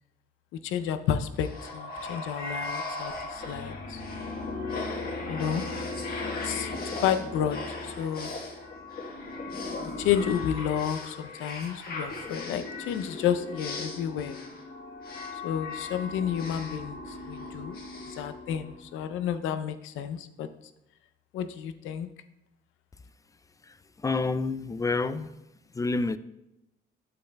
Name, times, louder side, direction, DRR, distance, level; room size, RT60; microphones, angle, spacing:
voice 1, 0.6-4.0 5.3-5.6 6.4-8.3 10.0-14.4 15.4-17.8 18.0-20.5 21.3-22.1, left 9 dB, 90° left, 0.5 m, -31 dB
sound 1, 1.4-19.0, left 3 dB, 50° left, 1.4 m, -37 dB
voice 2, 24.0-25.3 25.8-26.2, left 3 dB, 15° left, 0.3 m, -28 dB
8.6 x 7.7 x 2.2 m
cardioid pair, 90°, 20 cm